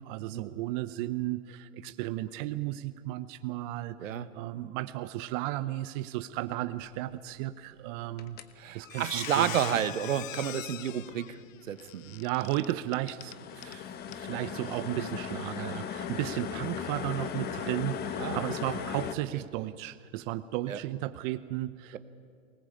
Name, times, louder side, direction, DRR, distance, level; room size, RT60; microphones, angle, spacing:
voice 1, 0.0-8.4 8.7-9.8 11.8-22.0, right 15 dB, 40° right, 11 dB, 0.8 m, -34 dB
sound 1, 8.2-8.4 13.0-19.2, left 8 dB, 25° left, 1.2 m, -37 dB
Squeak, 8.3-8.5 8.8-13.8 14.1-14.2 14.6-14.8, left 12 dB, 75° left, 0.8 m, -42 dB
voice 2, 8.6-11.4 11.7-12.0 18.2-18.4 20.7-20.8, right 9 dB, 75° right, 12 dB, 1.4 m, -30 dB
23.0 x 19.5 x 8.7 m, 2.2 s
hypercardioid pair, 125°, 39 cm